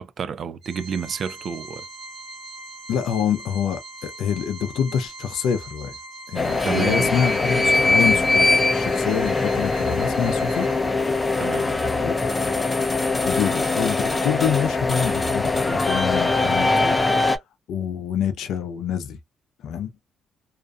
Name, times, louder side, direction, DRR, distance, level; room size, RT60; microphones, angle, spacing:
voice 1, 0.0-1.8 6.6-7.2 11.4-11.8, right 7 dB, 55° right, 0.3 m, -30 dB
Organ, 0.6-11.2, right 2 dB, 75° right, 1.1 m, -40 dB
voice 2, 2.9-6.0 6.3-10.7 12.0-12.4 13.2-17.4 17.7-19.2 19.6-19.9, left 8 dB, 80° left, 0.4 m, -26 dB
sound 1, 6.3-17.4, left 3 dB, 20° left, 0.5 m, -22 dB
2.4 x 2.2 x 2.4 m
cardioid pair, 90°, 0 cm